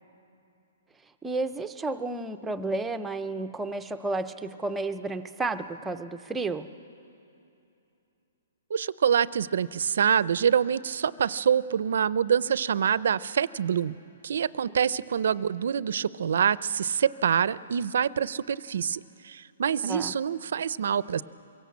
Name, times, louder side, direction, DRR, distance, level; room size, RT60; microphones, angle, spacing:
voice 1, 1.2-6.7 19.9-20.1, right 2 dB, 5° right, 8 dB, 0.5 m, -32 dB
voice 2, 8.7-14.0 14.2-21.2, right 8 dB, 65° right, 19 dB, 0.5 m, -26 dB
23.0 x 17.0 x 8.5 m, 2.8 s
hypercardioid pair, 170°, 0 cm